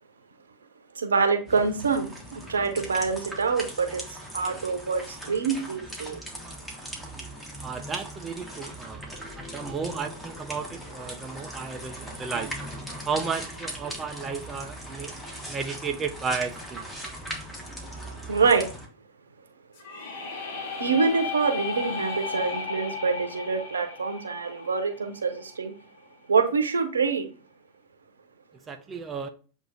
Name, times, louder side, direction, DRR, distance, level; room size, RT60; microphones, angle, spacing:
voice 1, 1.0-4.0 4.3-6.2 18.3-18.7 20.8-25.7 26.3-27.3, right 5 dB, 80° right, 0.8 m, -25 dB
sound 1, 1.5-18.9, equal, 5° left, 1.4 m, -39 dB
voice 2, 7.6-12.5 13.0-16.8 28.7-29.3, right 5 dB, 25° right, 0.5 m, -33 dB
sound 2, 19.8-25.6, left 5 dB, 60° left, 1.0 m, -35 dB
7.6 x 2.6 x 2.6 m
figure-of-eight pair, 90°, 0 cm